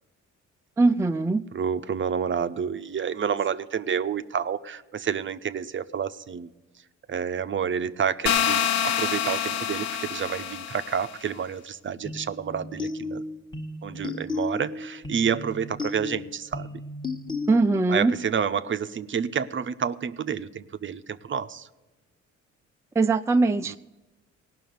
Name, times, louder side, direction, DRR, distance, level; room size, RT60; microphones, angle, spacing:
voice 1, 0.8-1.4 17.5-18.1 22.9-23.8, right 3 dB, 10° right, 0.4 m, -21 dB
voice 2, 1.5-6.5 7.1-13.2 13.8-16.8 17.9-21.7 23.7-23.8, right 7 dB, 40° right, 0.7 m, -29 dB
sound 1, 8.3-11.1, left 9 dB, 60° left, 0.7 m, -26 dB
sound 2, 12.0-18.0, left 3 dB, 15° left, 1.2 m, -35 dB
17.5 x 6.1 x 9.3 m
cardioid pair, 90°, 30 cm